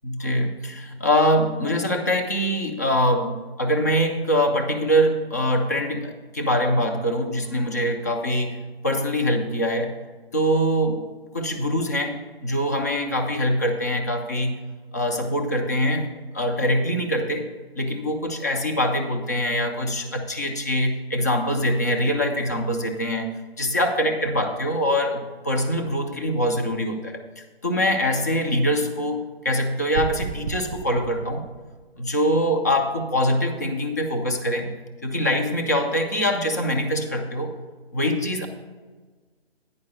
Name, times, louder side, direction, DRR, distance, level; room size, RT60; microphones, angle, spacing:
voice 1, 0.0-8.6 8.8-9.9 10.3-11.1 11.3-14.6 14.9-17.5 17.8-23.3 23.6-31.5 32.0-34.7 35.0-37.5 37.9-38.5, equal, 15° left, 4 dB, 0.4 m, -24 dB
sound 1, 29.9-32.1, right 6 dB, 55° right, 0.4 m, -33 dB
9.6 x 5.2 x 6.1 m, 1.4 s
figure-of-eight pair, 140°, 31 cm